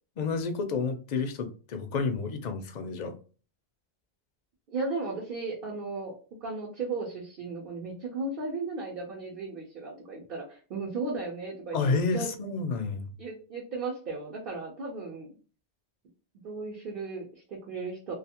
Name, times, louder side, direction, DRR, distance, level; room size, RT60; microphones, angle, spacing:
voice 1, 0.2-3.1 11.7-13.1, left 4 dB, 55° left, 7 dB, 0.5 m, -30 dB
voice 2, 4.7-6.1 6.4-12.3 13.2-15.3 16.4-18.1, right 3 dB, 60° right, -2 dB, 0.8 m, -35 dB
2.5 x 2.4 x 2.7 m, 0.36 s
omnidirectional pair, 1.1 m